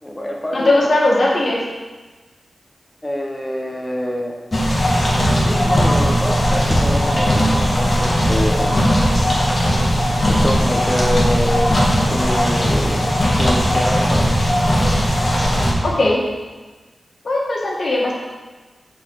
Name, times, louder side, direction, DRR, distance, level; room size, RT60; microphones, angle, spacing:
voice 1, 0.0-0.9 3.0-4.4 5.4-8.8 10.3-11.8 12.1-13.0 13.4-14.2, equal, 15° left, 0 dB, 1.2 m, -25 dB
voice 2, 0.5-1.6 15.8-16.2 17.2-18.1, left 2 dB, 60° left, -3 dB, 1.9 m, -18 dB
sound 1, 4.5-15.7, equal, 35° left, 1.7 m, -17 dB
6.7 x 4.8 x 6.4 m, 1.3 s
wide cardioid pair, 100°, 0 cm